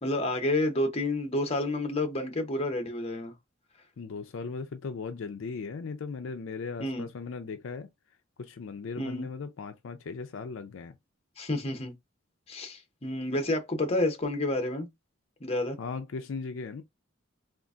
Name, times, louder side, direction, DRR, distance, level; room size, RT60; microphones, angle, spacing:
voice 1, 0.0-3.3 6.8-7.1 9.0-9.3 11.4-11.9 12.5-14.9 15.4-15.8, left 1 dB, 30° left, 0.7 m, -29 dB
voice 2, 4.0-7.9 8.4-11.0 15.8-16.8, left 4 dB, 65° left, 0.4 m, -37 dB
3.8 x 2.4 x 2.3 m
head